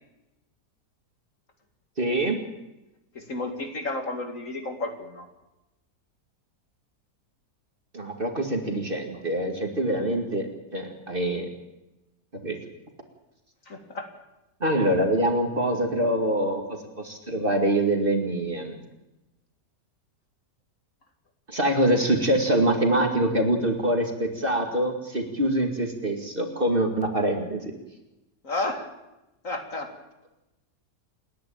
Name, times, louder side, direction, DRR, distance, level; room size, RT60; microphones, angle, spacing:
voice 1, 2.0-2.4 7.9-11.5 12.4-12.6 14.6-18.7 21.5-27.7, right 1 dB, 30° right, 4 dB, 2.4 m, -25 dB
voice 2, 3.1-5.3 13.7-14.1 28.4-28.9 29.4-29.9, left 2 dB, 50° left, 5 dB, 2.5 m, -32 dB
28.5 x 10.5 x 8.9 m, 0.97 s
omnidirectional pair, 1.8 m